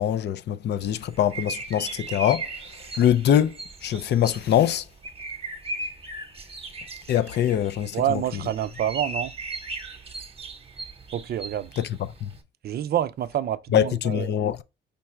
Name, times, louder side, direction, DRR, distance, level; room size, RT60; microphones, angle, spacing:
voice 1, 0.0-2.5 3.0-3.5 3.8-4.8 7.1-8.2 11.8-11.9 12.2-12.3 13.7-14.6, left 10 dB, 60° left, 0.4 m, -23 dB
sound 1, 0.8-12.4, right 2 dB, 30° right, 0.9 m, -38 dB
voice 2, 7.9-9.3 11.1-11.7 12.6-14.4, right 11 dB, 50° right, 0.4 m, -27 dB
5.2 x 2.3 x 4.3 m
cardioid pair, 90°, 20 cm